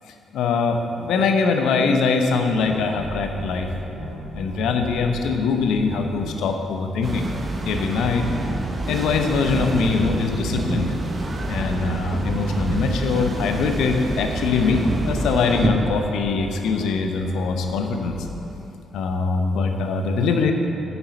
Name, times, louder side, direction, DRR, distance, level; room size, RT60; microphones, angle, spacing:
voice 1, 0.3-3.7 4.3-7.3 7.6-8.3 8.9-10.9 11.5-18.2 18.9-20.5, left 4 dB, 65° left, 5 dB, 0.9 m, -22 dB
sound 1, 2.6-6.3 8.3-12.3 14.3-18.3, equal, 80° right, 2.5 m, -36 dB
sound 2, 7.0-15.7, right 2 dB, 35° right, 1.3 m, -27 dB
9.7 x 6.9 x 6.9 m, 2.8 s
figure-of-eight pair, 40°, 0 cm